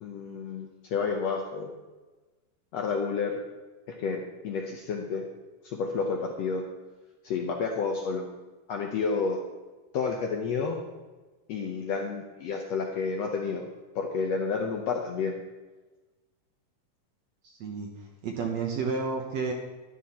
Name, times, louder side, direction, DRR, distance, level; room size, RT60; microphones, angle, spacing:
voice 1, 0.0-1.7 2.7-3.4 4.0-5.2 5.6-6.6 7.2-8.3 8.7-9.4 9.9-10.8 11.5-13.7 13.9-15.4, left 5 dB, 70° left, 1 dB, 1.6 m, -30 dB
voice 2, 17.4-17.9 18.2-19.5, right 5 dB, 65° right, 2 dB, 1.9 m, -31 dB
11.0 x 11.0 x 4.3 m, 1.2 s
omnidirectional pair, 3.9 m